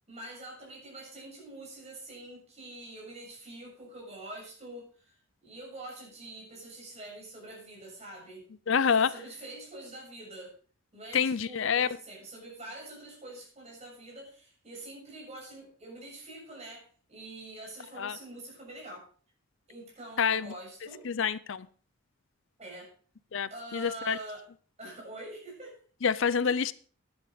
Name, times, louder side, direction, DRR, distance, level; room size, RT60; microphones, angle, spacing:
voice 1, 0.1-8.4 9.1-10.6 10.9-19.1 19.7-21.1 22.6-22.9 23.5-24.5 24.8-25.8, right 2 dB, 30° right, 7.1 m, -45 dB
voice 2, 8.7-9.1 11.1-11.9 18.0-18.2 20.2-20.5 21.0-21.7 23.3-24.2 26.0-26.7, left 6 dB, 65° left, 0.5 m, -27 dB
11.5 x 10.5 x 5.1 m
head